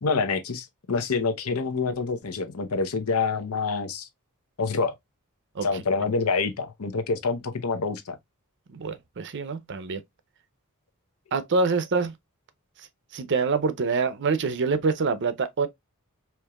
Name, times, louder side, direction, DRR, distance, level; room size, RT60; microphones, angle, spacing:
voice 1, 0.0-4.1 4.6-4.9 5.6-8.2, left 4 dB, 85° left, 0.7 m, -27 dB
voice 2, 8.7-10.0 11.3-12.1 13.1-15.7, right 4 dB, 55° right, 0.6 m, -25 dB
4.5 x 2.9 x 2.3 m
head